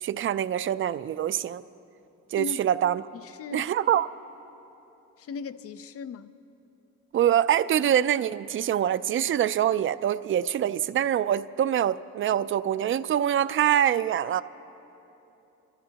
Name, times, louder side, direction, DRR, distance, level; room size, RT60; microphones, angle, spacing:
voice 1, 0.0-1.6 2.3-3.0 3.5-4.1 7.1-14.4, right 10 dB, 45° right, 14 dB, 0.4 m, -24 dB
voice 2, 3.1-3.7 5.2-6.3, left 5 dB, 50° left, 14 dB, 0.5 m, -38 dB
26.0 x 13.5 x 2.9 m, 3.0 s
cardioid pair, 90°, 30 cm